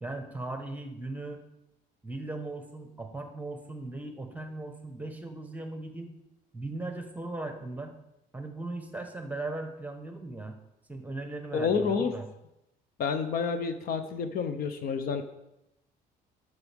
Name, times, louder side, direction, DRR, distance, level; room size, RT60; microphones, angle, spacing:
voice 1, 0.0-1.4 2.0-6.1 6.5-7.9 8.3-10.6 10.9-12.2, right 2 dB, 10° right, 5 dB, 1.2 m, -38 dB
voice 2, 11.5-12.1 13.0-15.2, left 5 dB, 60° left, 9 dB, 0.8 m, -29 dB
11.0 x 6.7 x 3.6 m, 0.88 s
cardioid pair, 110°, 17 cm